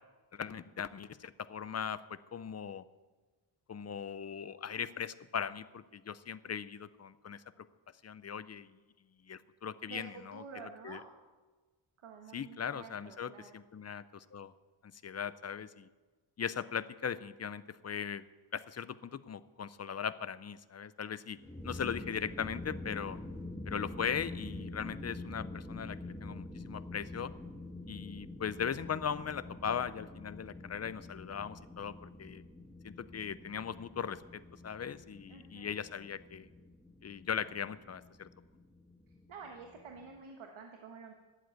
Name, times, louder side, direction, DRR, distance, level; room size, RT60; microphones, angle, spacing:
voice 1, 0.3-2.8 3.7-7.4 8.0-8.8 9.2-11.0 12.3-14.5 14.8-15.9 16.4-18.2 18.5-21.4 21.6-23.2 23.7-27.3 27.9-32.4 32.8-36.5 37.0-38.3, left 7 dB, 35° left, 16 dB, 0.4 m, -39 dB
voice 2, 9.9-11.0 12.0-13.6 35.3-35.7 39.3-41.1, right 5 dB, 70° right, 3 dB, 1.4 m, -49 dB
sound 1, 21.4-40.2, left 2 dB, 5° left, 1.2 m, -46 dB
12.5 x 7.8 x 9.2 m, 1.3 s
wide cardioid pair, 145°, 50 cm